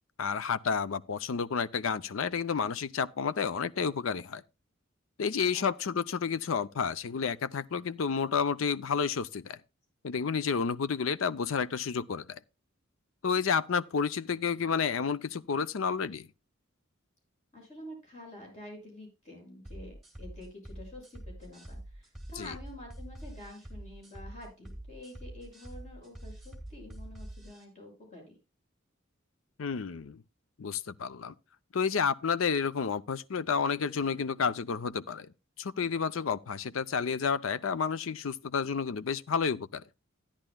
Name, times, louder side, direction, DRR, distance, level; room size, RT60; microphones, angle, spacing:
voice 1, 0.2-4.4 5.2-9.6 10.0-12.4 13.2-16.3 22.4-22.5 29.6-30.2 30.6-31.3 31.7-39.8, left 6 dB, 75° left, 0.5 m, -30 dB
voice 2, 5.5-5.9 17.5-28.4, left 1 dB, 35° left, 6.4 m, -48 dB
sound 1, 19.7-27.6, right 1 dB, ahead, 2.3 m, -45 dB
14.0 x 10.0 x 2.2 m
head